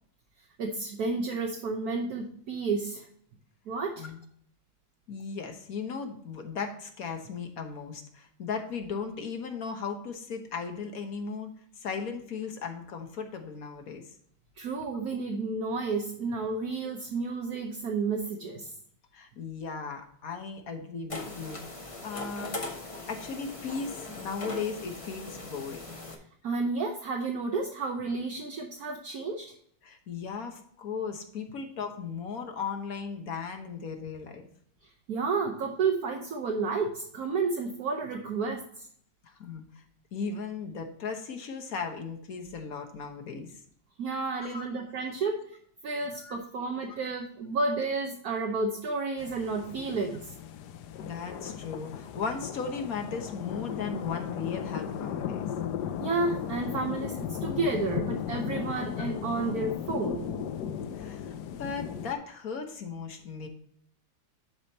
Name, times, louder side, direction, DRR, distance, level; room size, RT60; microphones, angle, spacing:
voice 1, 0.6-3.1 3.7-4.1 14.6-18.7 26.4-29.5 35.1-38.9 44.0-45.6 45.8-50.3 56.0-60.5, right 4 dB, 60° right, 2 dB, 1.3 m, -31 dB
voice 2, 5.1-14.1 19.1-21.6 22.0-25.8 29.8-34.5 39.2-39.6 40.1-43.6 44.4-44.7 46.1-46.3 46.9-47.0 51.0-55.5 60.6-63.5, left 5 dB, 55° left, 5 dB, 1.4 m, -37 dB
sound 1, 21.1-26.2, left 2 dB, 25° left, 0.9 m, -40 dB
sound 2, 49.2-62.1, left 9 dB, 70° left, 1.2 m, -36 dB
11.5 x 5.0 x 2.9 m, 0.64 s
omnidirectional pair, 1.9 m